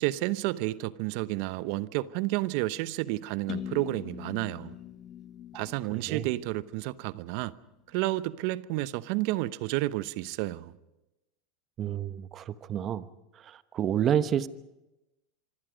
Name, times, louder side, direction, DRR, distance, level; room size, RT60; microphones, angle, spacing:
voice 1, 0.0-4.7 5.5-7.5 7.9-10.7, right 18 dB, 60° right, 0.8 m, -31 dB
sound 1, 3.5-7.3, left 10 dB, 45° left, 1.2 m, -42 dB
voice 2, 5.9-6.2 11.8-13.1 13.4-14.5, right 9 dB, 40° right, 1.1 m, -29 dB
25.0 x 25.0 x 5.2 m
hypercardioid pair, 95°, 0 cm